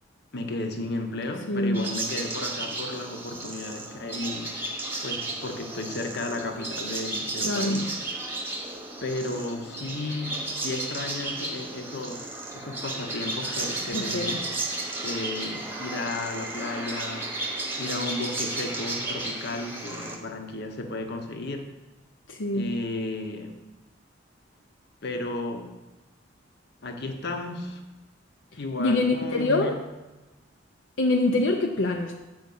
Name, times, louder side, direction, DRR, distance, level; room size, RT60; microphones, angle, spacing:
voice 1, 0.3-4.5 5.0-8.0 9.0-14.5 15.0-17.3 17.8-21.8 22.5-23.6 25.0-25.7 26.8-27.8 28.6-29.9, left 2 dB, 60° left, 5 dB, 0.9 m, -34 dB
voice 2, 1.5-1.9 7.4-7.9 13.9-14.5 22.3-22.7 28.8-29.8 31.0-32.1, left 2 dB, 80° left, 3 dB, 0.7 m, -25 dB
sound 1, 1.7-20.2, right 2 dB, 10° right, 1.0 m, -33 dB
7.8 x 5.4 x 5.5 m, 1.1 s
head